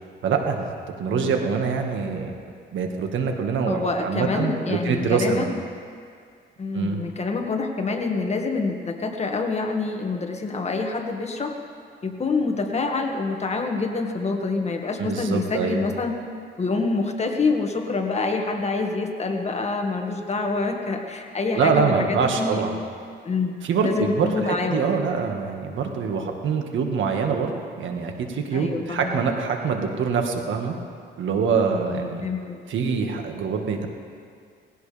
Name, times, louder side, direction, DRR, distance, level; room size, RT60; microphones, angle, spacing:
voice 1, 0.2-0.7 1.0-2.3 2.7-5.5 6.7-7.0 15.0-15.8 21.6-22.7 23.6-27.5 27.8-30.7 31.2-32.2 32.7-33.9, right 5 dB, 75° right, 3 dB, 1.8 m, -24 dB
voice 2, 3.7-5.5 6.6-11.5 12.0-16.2 16.6-22.6 23.2-23.6 23.8-25.0 28.5-29.2 31.7-32.6, left 3 dB, 35° left, 2 dB, 1.8 m, -26 dB
19.5 x 16.5 x 3.5 m, 2.2 s
cardioid pair, 90°, 20 cm